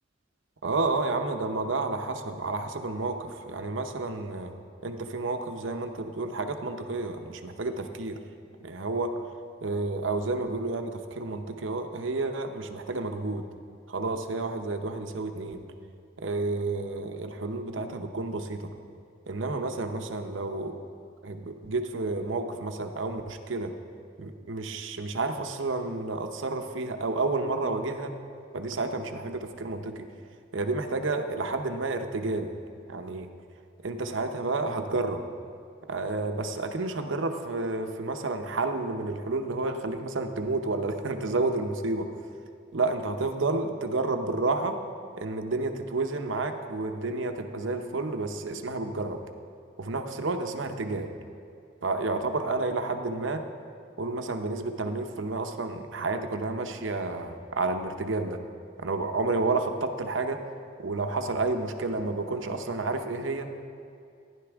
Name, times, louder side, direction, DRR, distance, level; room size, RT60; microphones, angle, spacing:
voice 1, 0.6-4.5 4.8-8.2 8.6-9.1 9.6-13.4 13.9-15.6 16.2-18.7 19.3-20.8 21.2-23.7 24.2-28.1 28.5-30.1 30.5-32.5 32.9-33.3 33.8-35.3 35.9-42.1 42.7-44.8 45.1-49.2 49.8-51.1 51.8-53.4 54.0-58.4 58.8-60.4 60.8-63.6, right 3 dB, 65° right, 6 dB, 0.8 m, -30 dB
15.0 x 10.5 x 3.5 m, 2.4 s
head